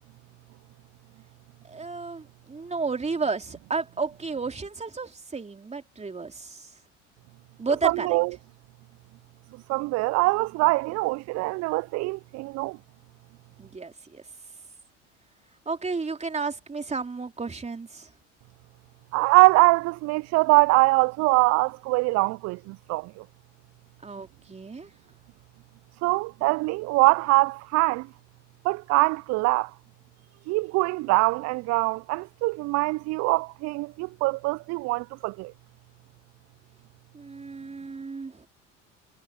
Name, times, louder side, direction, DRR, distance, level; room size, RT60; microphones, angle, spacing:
voice 1, 1.7-6.7 7.6-8.1 13.6-14.2 15.7-18.1 24.0-24.9 37.1-38.4, right 4 dB, 20° right, 3.1 m, -32 dB
voice 2, 7.8-8.4 9.5-12.8 19.1-23.2 26.0-28.1 28.6-29.7 30.5-35.5, right 24 dB, 45° right, 0.5 m, -23 dB
hypercardioid pair, 70°, 37 cm